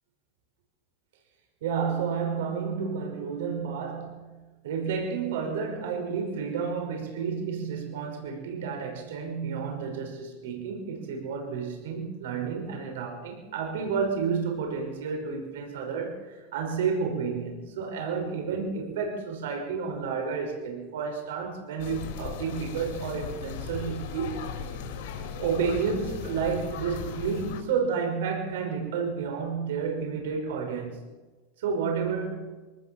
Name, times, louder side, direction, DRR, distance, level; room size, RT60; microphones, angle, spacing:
voice 1, 1.6-24.4 25.4-31.1 31.6-32.5, right 6 dB, 80° right, 2 dB, 5.7 m, -31 dB
sound 1, 21.8-27.6, left 7 dB, 65° left, 4.9 m, -37 dB
25.0 x 19.0 x 7.2 m, 1.3 s
supercardioid pair, 170°, 0 cm